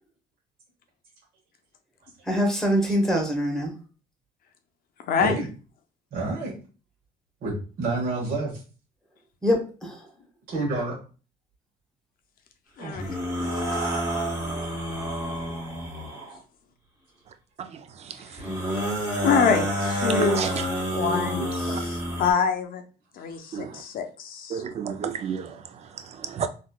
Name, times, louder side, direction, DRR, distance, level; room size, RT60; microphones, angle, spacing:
voice 1, 2.2-3.7 9.4-10.1, equal, 5° left, 1.0 m, -24 dB
voice 2, 5.1-5.4 12.8-13.2 13.5-13.6 19.2-20.6 20.9-22.8 23.2-24.6, left 6 dB, 60° left, 0.6 m, -26 dB
voice 3, 6.1-6.6 7.4-8.5 10.5-11.0 12.8-13.0 13.7-13.8, right 2 dB, 60° right, 1.1 m, -28 dB
sound 1, 13.0-16.4 18.4-22.3, right 1 dB, 15° right, 1.4 m, -28 dB
voice 4, 20.2-20.6 21.7-21.8 23.5-23.7 24.5-25.6 26.2-26.5, right 7 dB, 40° right, 0.4 m, -30 dB
3.9 x 2.5 x 2.3 m
cardioid pair, 110°, 17 cm